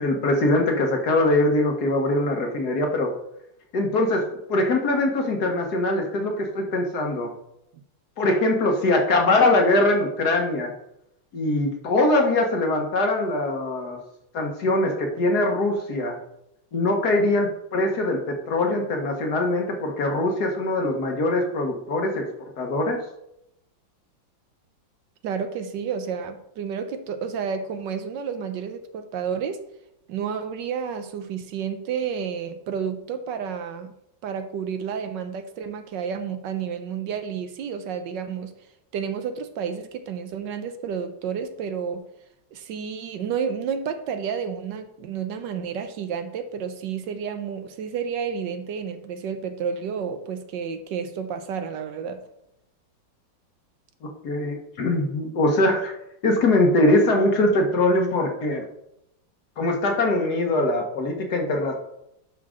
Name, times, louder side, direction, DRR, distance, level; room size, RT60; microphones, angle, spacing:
voice 1, 0.0-3.1 3.7-7.3 8.2-10.7 11.3-14.0 14.3-16.2 16.7-22.3 22.6-23.0 54.2-55.9 56.2-58.7 59.6-61.7, left 2 dB, 55° left, 2 dB, 1.8 m, -22 dB
voice 2, 25.2-29.6 30.1-33.9 34.2-38.5 38.9-42.0 42.5-52.2, right 7 dB, 75° right, 8 dB, 1.4 m, -30 dB
11.0 x 5.8 x 3.7 m, 0.82 s
omnidirectional pair, 2.1 m